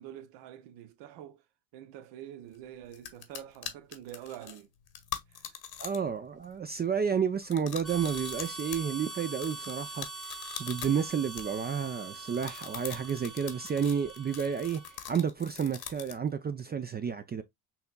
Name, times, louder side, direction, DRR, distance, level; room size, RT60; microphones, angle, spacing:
voice 1, 0.0-1.4 1.7-4.7 5.3-5.4, right 11 dB, 75° right, 0.8 m, -46 dB
sound 1, 2.5-2.6 2.9-6.1 6.4-6.8 7.4-11.9 12.3-16.3, left 9 dB, 55° left, 1.1 m, -43 dB
voice 2, 5.8-10.1 10.6-14.8 15.1-17.4, right 7 dB, 25° right, 0.4 m, -31 dB
Harmonica, 7.8-15.1, right 3 dB, ahead, 1.0 m, -43 dB
5.7 x 2.9 x 2.2 m
supercardioid pair, 70°, 43 cm